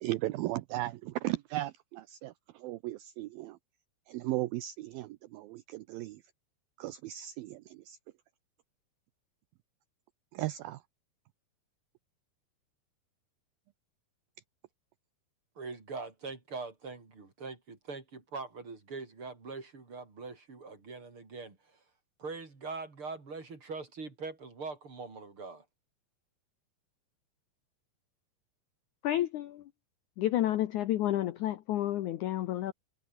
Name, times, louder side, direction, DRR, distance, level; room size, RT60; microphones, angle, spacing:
voice 1, 0.0-3.6 4.1-6.2 6.8-8.0 10.3-10.8, right 16 dB, 80° right, 2.2 m, -36 dB
voice 2, 15.6-21.8 22.2-25.6, right 4 dB, 30° right, 4.9 m, -42 dB
voice 3, 29.0-29.6 30.2-32.7, left 13 dB, 85° left, 1.7 m, -30 dB
omnidirectional pair, 4.9 m